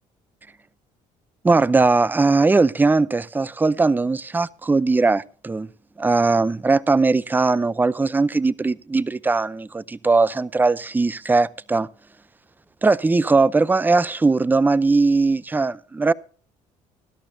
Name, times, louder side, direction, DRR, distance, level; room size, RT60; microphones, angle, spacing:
voice 1, 1.4-5.7 6.0-11.9 12.8-16.1, right 3 dB, 15° right, 0.6 m, -19 dB
20.0 x 11.5 x 2.7 m
cardioid pair, 90°, 14 cm